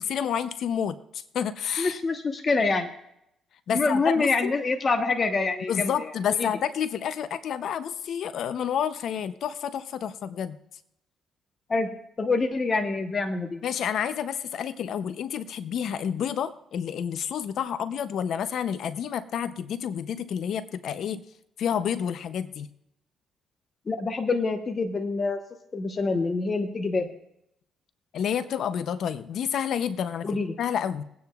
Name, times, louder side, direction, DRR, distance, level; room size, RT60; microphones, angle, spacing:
voice 1, 0.0-2.0 3.7-4.5 5.7-10.6 13.6-21.2 21.6-22.7 28.1-30.3 30.6-31.0, left 8 dB, 70° left, 13 dB, 0.6 m, -29 dB
voice 2, 1.8-2.9 3.7-6.1 6.4-6.5 11.7-11.9 12.2-13.6 23.9-25.4 25.7-27.1 30.2-30.5, left 3 dB, 35° left, 5 dB, 1.0 m, -26 dB
22.0 x 9.3 x 2.3 m, 0.78 s
cardioid pair, 90°, 0 cm